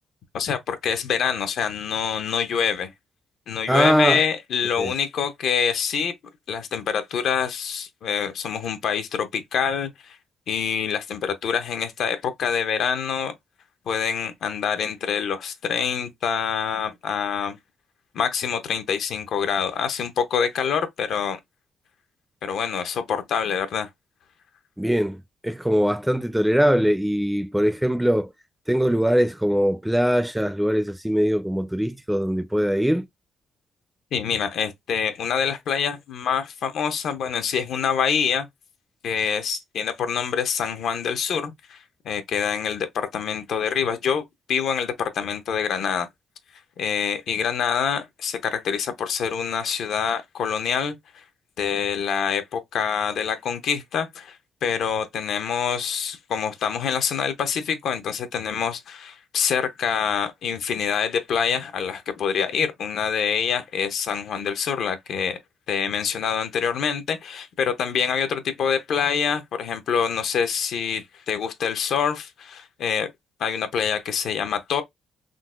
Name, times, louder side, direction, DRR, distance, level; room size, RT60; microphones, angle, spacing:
voice 1, 0.3-2.9 3.5-6.1 6.5-10.2 10.5-13.3 13.9-17.6 18.1-21.4 22.4-23.9 34.1-38.5 39.0-46.1 46.8-51.2 51.6-65.4 65.7-73.1 73.4-74.8, left 7 dB, 70° left, 0.5 m, -26 dB
voice 2, 3.7-4.2 4.8-4.9 24.8-28.3 28.7-33.1, equal, 5° right, 0.4 m, -22 dB
3.8 x 2.1 x 2.3 m
cardioid pair, 90°, 0 cm